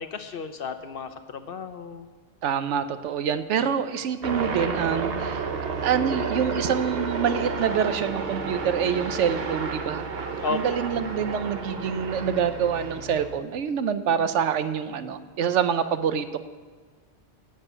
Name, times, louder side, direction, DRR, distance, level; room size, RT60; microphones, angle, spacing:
voice 1, 0.0-2.1 10.4-10.8, left 4 dB, 55° left, 9 dB, 0.8 m, -33 dB
voice 2, 2.4-5.5 5.8-10.0 10.5-16.4, right 7 dB, 80° right, 11 dB, 1.0 m, -26 dB
sound 1, 4.2-13.4, right 4 dB, 55° right, 1.1 m, -31 dB
10.5 x 7.7 x 8.2 m, 1.4 s
omnidirectional pair, 1.2 m